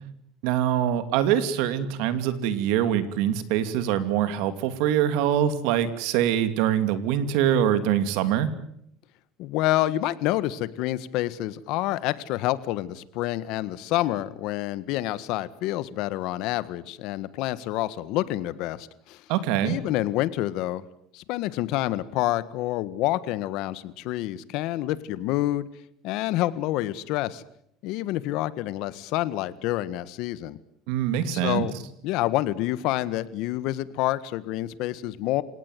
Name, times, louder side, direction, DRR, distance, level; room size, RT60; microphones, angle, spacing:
voice 1, 0.4-8.5 19.3-19.8 30.9-31.7, right 10 dB, 75° right, 11 dB, 2.7 m, -24 dB
voice 2, 9.4-19.2 19.6-20.8 21.1-25.7 26.0-27.4 27.8-30.6 31.3-31.8 32.0-35.4, left 15 dB, 70° left, 16 dB, 1.6 m, -28 dB
28.0 x 18.0 x 9.3 m, 0.72 s
cardioid pair, 130°, 0 cm